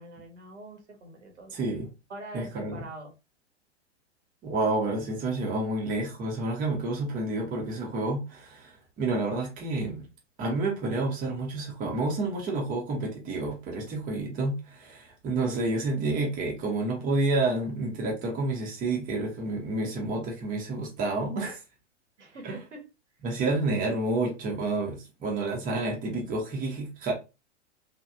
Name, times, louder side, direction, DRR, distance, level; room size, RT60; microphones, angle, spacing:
voice 1, 0.0-1.5 2.1-3.1 22.2-22.8, right 1 dB, 75° right, 1.2 m, -44 dB
voice 2, 1.5-1.9 2.3-2.8 4.4-10.1 10.4-21.6 22.4-22.6 23.2-27.1, right 2 dB, 25° right, 0.9 m, -29 dB
3.1 x 2.5 x 2.5 m
figure-of-eight pair, 105°, 36 cm